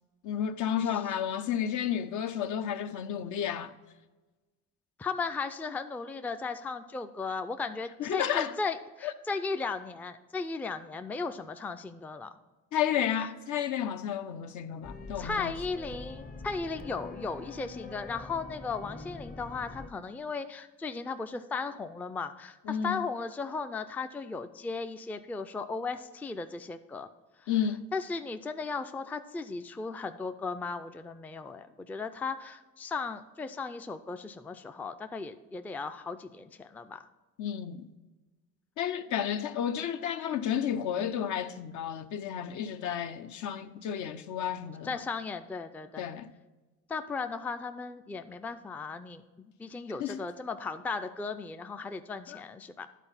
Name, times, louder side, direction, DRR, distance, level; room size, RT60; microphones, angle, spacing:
voice 1, 0.2-3.7 8.0-8.5 9.0-9.1 12.7-15.5 22.6-23.0 27.5-27.9 37.4-37.9 38.8-45.0 46.0-46.3 50.0-50.2 52.3-52.4, left 9 dB, 60° left, 0.7 m, -32 dB
voice 2, 5.0-12.3 15.2-27.1 27.4-27.5 27.9-37.1 44.8-46.1 46.9-52.9, left 4 dB, 5° left, 0.3 m, -36 dB
sound 1, 14.8-19.9, left 3 dB, 25° left, 0.7 m, -44 dB
10.0 x 4.0 x 5.5 m
supercardioid pair, 80°, 33 cm